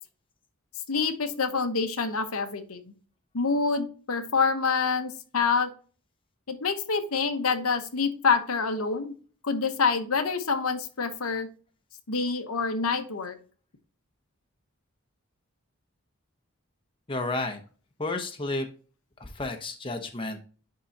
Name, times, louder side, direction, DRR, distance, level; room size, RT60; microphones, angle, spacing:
voice 1, 0.9-2.9 3.3-5.7 6.5-9.1 9.4-11.5 12.1-13.4, left 5 dB, 85° left, 7 dB, 1.0 m, -27 dB
voice 2, 17.1-17.6 18.0-18.7 19.2-20.4, left 2 dB, 25° left, 5 dB, 0.8 m, -31 dB
9.7 x 3.8 x 2.7 m, 0.40 s
head